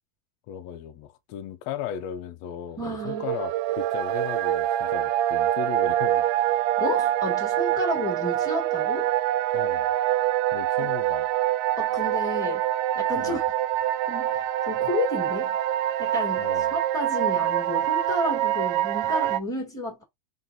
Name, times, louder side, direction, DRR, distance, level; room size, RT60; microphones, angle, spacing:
voice 1, 0.5-2.8 3.0-6.4 9.5-9.9 10.5-11.3 13.1-13.4 16.4-16.7, left 9 dB, 85° left, 1.5 m, -36 dB
voice 2, 2.8-3.3 6.8-9.1 10.8-10.9 11.8-12.7 12.9-13.4 14.1-15.6 16.0-20.0, left 2 dB, ahead, 1.5 m, -31 dB
sound 1, 2.9-19.4, right 13 dB, 85° right, 2.3 m, -25 dB
4.9 x 4.0 x 2.7 m
omnidirectional pair, 4.0 m